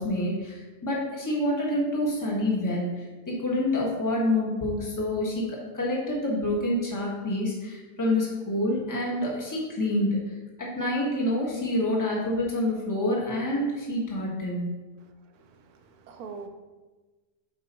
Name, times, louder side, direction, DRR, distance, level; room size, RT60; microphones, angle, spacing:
voice 1, 0.0-10.1 10.6-14.6, left 1 dB, 10° left, -3 dB, 1.3 m, -27 dB
voice 2, 15.3-16.5, right 5 dB, 70° right, 6 dB, 1.2 m, -43 dB
7.6 x 5.3 x 3.0 m, 1.3 s
omnidirectional pair, 1.7 m